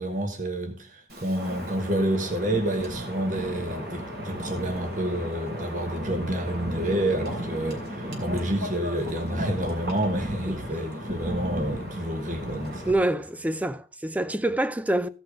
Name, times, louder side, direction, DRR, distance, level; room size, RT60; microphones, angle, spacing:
voice 1, 0.0-12.9, right 1 dB, 45° right, 1.4 m, -29 dB
Wind, 1.1-12.9, equal, 60° right, 3.3 m, -34 dB
voice 2, 12.9-15.1, right 1 dB, 10° right, 0.4 m, -26 dB
15.0 x 5.8 x 5.0 m
head